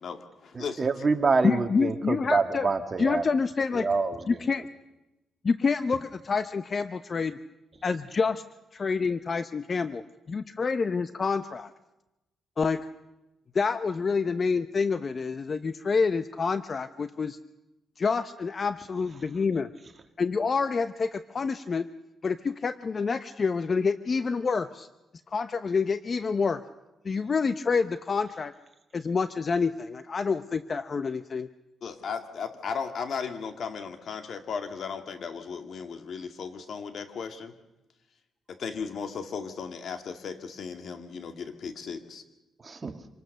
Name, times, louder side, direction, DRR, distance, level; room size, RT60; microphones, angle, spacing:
voice 1, 0.0-1.1 31.8-37.5 38.5-42.2, left 6 dB, 65° left, 7 dB, 2.3 m, -36 dB
voice 2, 0.6-3.2 3.7-4.4 42.6-43.0, right 4 dB, 35° right, 6 dB, 2.1 m, -26 dB
voice 3, 1.4-2.7 3.0-3.9 4.3-4.6 5.4-7.4 7.8-8.4 8.7-10.0 10.3-11.7 12.6-12.9 13.5-17.4 18.0-19.7 20.2-21.9 22.2-24.9 25.3-26.6 27.0-28.5 28.9-31.5, left 5 dB, 45° left, 12 dB, 0.8 m, -27 dB
26.5 x 19.5 x 6.7 m, 0.97 s
cardioid pair, 80°, 0 cm